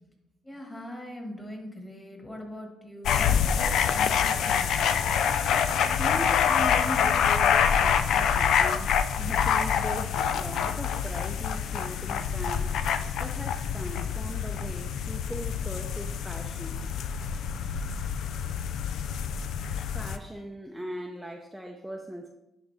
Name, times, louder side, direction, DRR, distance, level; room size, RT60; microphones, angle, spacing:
voice 1, 0.4-4.7, left 1 dB, 15° left, 2 dB, 1.7 m, -41 dB
sound 1, 3.0-20.2, left 7 dB, 75° left, 0.4 m, -26 dB
sound 2, 3.1-11.2 11.5-11.8, left 3 dB, 45° left, 0.7 m, -47 dB
voice 2, 5.7-16.8 19.9-22.3, equal, ahead, 1 dB, 0.6 m, -39 dB
10.5 x 3.9 x 3.4 m, 0.94 s
cardioid pair, 90°, 0 cm